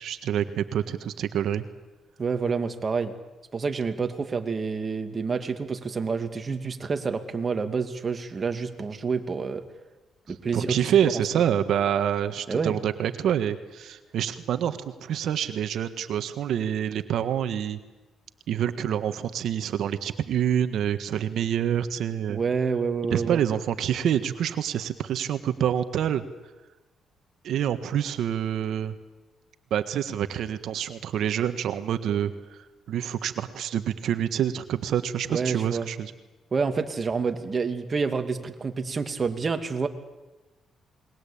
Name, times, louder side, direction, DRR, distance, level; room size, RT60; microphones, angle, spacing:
voice 1, 0.0-1.7 10.5-17.8 18.5-22.4 23.1-26.2 27.4-28.9 29.7-32.3 32.9-36.1, right 9 dB, 75° right, 9 dB, 1.6 m, -27 dB
voice 2, 2.2-3.1 3.5-9.6 10.3-10.9 12.5-12.8 22.3-23.4 35.3-35.9 36.5-39.9, right 5 dB, 35° right, 7 dB, 2.4 m, -28 dB
28.5 x 22.0 x 8.7 m, 1.1 s
cardioid pair, 90°, 0 cm